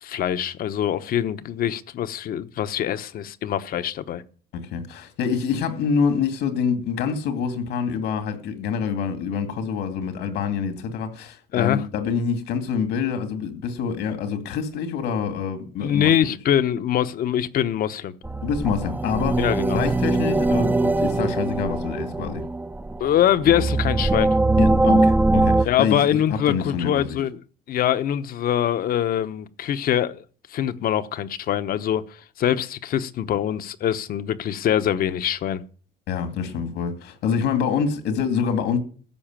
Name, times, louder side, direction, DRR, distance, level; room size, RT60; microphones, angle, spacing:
voice 1, 0.0-4.2 11.5-11.8 15.8-18.1 19.4-19.8 23.0-24.4 25.7-27.4 27.7-30.2 30.5-35.7, left 10 dB, 60° left, 1.0 m, -23 dB
voice 2, 4.5-16.1 18.4-19.4 19.7-22.4 24.6-27.2 36.1-38.8, left 6 dB, 85° left, 2.5 m, -26 dB
sound 1, 18.2-25.7, right 2 dB, 10° right, 0.6 m, -21 dB
14.5 x 5.7 x 8.9 m
cardioid pair, 110°, 17 cm